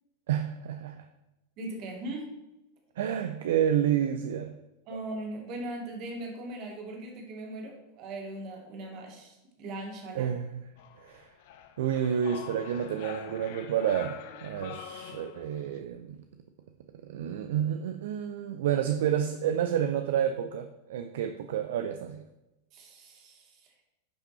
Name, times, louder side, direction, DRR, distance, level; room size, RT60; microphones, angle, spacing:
voice 1, 0.3-1.0 3.0-4.6 10.1-10.6 11.0-11.3 11.8-16.2 17.1-22.2, right 9 dB, 55° right, 8 dB, 0.5 m, -29 dB
voice 2, 1.6-2.3 4.9-10.3 22.7-23.7, right 1 dB, 40° right, 1 dB, 2.4 m, -39 dB
sound 1, 10.8-15.8, left 9 dB, 50° left, 0.7 m, -45 dB
10.5 x 5.8 x 4.3 m, 0.97 s
figure-of-eight pair, 90°, 0 cm